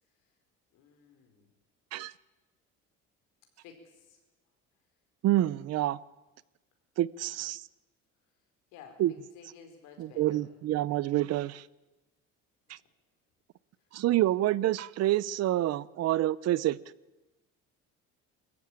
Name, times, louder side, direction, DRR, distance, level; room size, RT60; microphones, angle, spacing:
voice 1, 0.7-1.5 3.6-4.2 8.7-9.0 9.3-10.5, left 6 dB, 85° left, 4.8 m, -53 dB
voice 2, 5.2-6.0 7.0-7.6 9.0-9.1 10.0-11.6 12.7-12.8 13.9-16.8, right 14 dB, 55° right, 0.7 m, -27 dB
22.0 x 14.5 x 8.9 m
cardioid pair, 120°, 30 cm